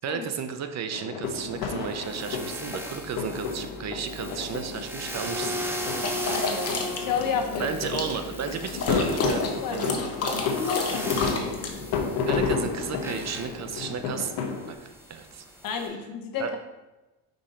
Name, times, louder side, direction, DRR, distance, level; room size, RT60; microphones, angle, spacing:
voice 1, 0.0-5.6 7.6-10.0 10.4-10.6 12.3-14.3 14.7-15.4 16.4-16.5, right 7 dB, 50° right, 7 dB, 0.7 m, -33 dB
sound 1, 0.9-14.7, left 5 dB, 85° left, 1.0 m, -32 dB
sound 2, 1.2-15.9, equal, 5° right, 0.8 m, -38 dB
sound 3, 6.0-11.7, left 3 dB, 40° left, 1.1 m, -31 dB
voice 2, 6.2-7.8 9.6-10.1 10.5-11.5 15.6-16.6, left 6 dB, 65° left, 3 dB, 1.1 m, -31 dB
5.3 x 5.2 x 4.3 m, 1.1 s
cardioid pair, 120°, 36 cm